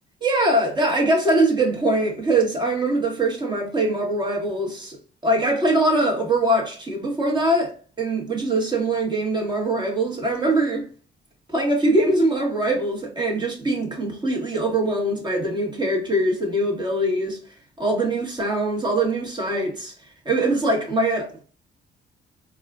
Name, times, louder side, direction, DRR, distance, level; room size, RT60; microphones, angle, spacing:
voice 1, 0.2-5.0 5.2-10.9 11.5-17.4 17.8-19.9 20.2-21.4, right 1 dB, 20° right, 1.4 m, -22 dB
4.1 x 2.4 x 2.4 m
cardioid pair, 90°, 20 cm